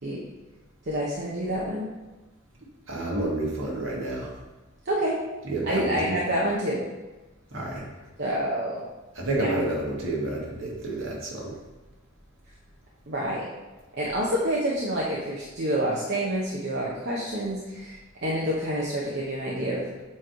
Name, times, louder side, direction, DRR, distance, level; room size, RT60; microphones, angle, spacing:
voice 1, 0.9-1.9 4.8-5.2 5.6-6.8 8.2-8.8 9.3-9.5 13.1-13.5 14.0-19.8, right 1 dB, 50° right, -5 dB, 0.8 m, -28 dB
voice 2, 2.9-4.3 5.4-6.1 7.5-7.8 9.1-11.5, right 2 dB, 70° right, -3 dB, 1.6 m, -29 dB
7.3 x 3.1 x 4.7 m, 1.1 s
head